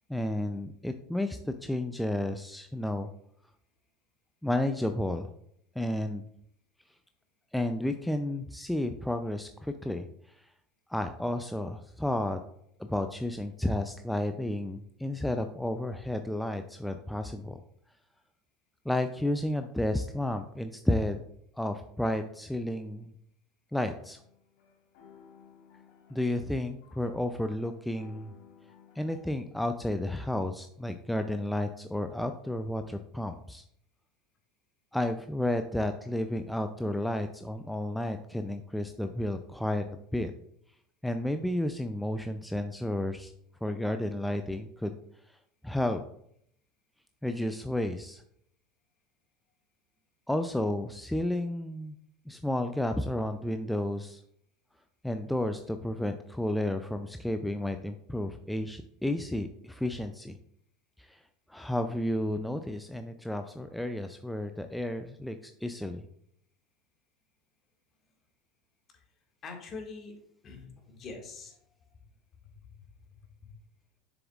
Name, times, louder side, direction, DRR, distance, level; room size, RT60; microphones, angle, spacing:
voice 1, 0.1-3.1 4.4-5.3 5.8-6.2 7.5-10.5 10.9-12.4 12.8-17.6 18.8-21.2 21.5-23.1 23.7-24.2 26.1-28.3 29.0-33.6 34.9-40.3 41.0-43.3 43.6-46.0 47.2-48.2 50.3-52.0 52.3-54.2 55.0-60.4 61.0-61.2 61.5-66.0, left 1 dB, 5° left, 7 dB, 0.4 m, -32 dB
sound 1, 23.9-29.3, left 7 dB, 65° left, 1.3 m, -57 dB
voice 2, 69.4-70.1 70.4-71.6 72.6-72.7 73.4-73.5, left 4 dB, 40° left, 2 dB, 1.9 m, -43 dB
7.0 x 6.8 x 2.4 m, 0.71 s
hypercardioid pair, 80°, 0 cm